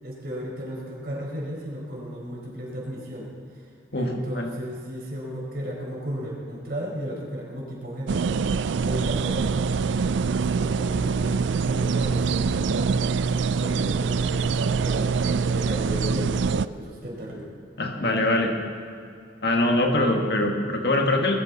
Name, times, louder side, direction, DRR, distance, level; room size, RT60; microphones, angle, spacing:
voice 1, 0.0-3.7 3.9-8.3 8.8-9.6 10.3-13.0 13.6-17.5, equal, 50° right, -3 dB, 4.7 m, -34 dB
voice 2, 3.9-4.5 17.8-18.5 19.4-21.4, left 1 dB, 55° left, 2 dB, 1.7 m, -23 dB
sound 1, 8.1-11.3 11.6-13.4, equal, 25° left, 4.9 m, -45 dB
sound 2, 8.1-16.6, right 5 dB, 70° right, 0.4 m, -24 dB
21.0 x 14.0 x 4.1 m, 2.5 s
head